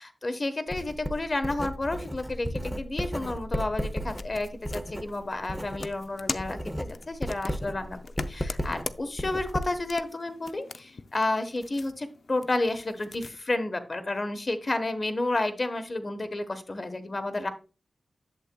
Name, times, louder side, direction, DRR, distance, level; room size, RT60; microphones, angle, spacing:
voice 1, 0.0-8.0 8.3-17.5, left 2 dB, 30° left, 9 dB, 1.1 m, -31 dB
Writing, 0.7-6.0 6.3-10.0, equal, ahead, 0.7 m, -34 dB
sound 1, 3.7-13.4, left 4 dB, 55° left, 0.5 m, -42 dB
11.0 x 8.0 x 2.2 m, 0.35 s
wide cardioid pair, 145°, 0 cm